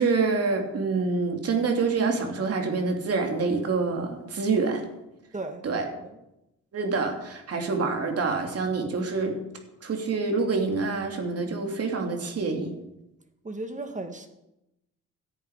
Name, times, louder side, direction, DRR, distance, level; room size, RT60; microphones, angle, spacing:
voice 1, 0.0-4.8 5.6-5.9 6.7-9.3 9.8-12.7, right 4 dB, 50° right, 3 dB, 3.1 m, -26 dB
voice 2, 5.3-6.2 13.4-14.3, right 2 dB, 25° right, 6 dB, 1.7 m, -36 dB
17.0 x 10.5 x 5.1 m, 0.90 s
cardioid pair, 90°, 30 cm